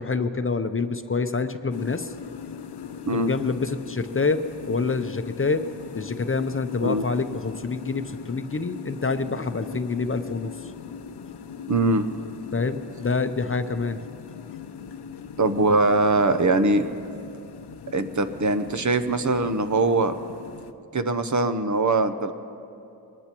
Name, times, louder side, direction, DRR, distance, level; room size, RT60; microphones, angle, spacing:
voice 1, 0.0-2.1 3.1-5.7 5.9-10.7 12.5-14.0, left 4 dB, 35° left, 9 dB, 0.6 m, -27 dB
sound 1, 1.7-20.7, left 7 dB, 80° left, 0.7 m, -40 dB
voice 2, 11.7-12.1 15.4-16.9 17.9-20.1 20.9-22.3, right 2 dB, 50° right, 9 dB, 0.8 m, -22 dB
22.5 x 19.5 x 3.0 m, 2.6 s
wide cardioid pair, 75°, 39 cm